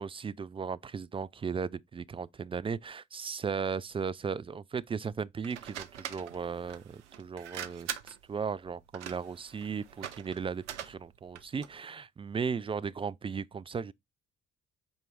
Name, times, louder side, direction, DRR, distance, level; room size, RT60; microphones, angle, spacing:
voice 1, 0.0-13.9, right 6 dB, 15° right, 0.3 m, -36 dB
sound 1, 5.4-11.8, right 10 dB, 80° right, 0.5 m, -43 dB
7.8 x 4.5 x 3.3 m
figure-of-eight pair, 40°, 34 cm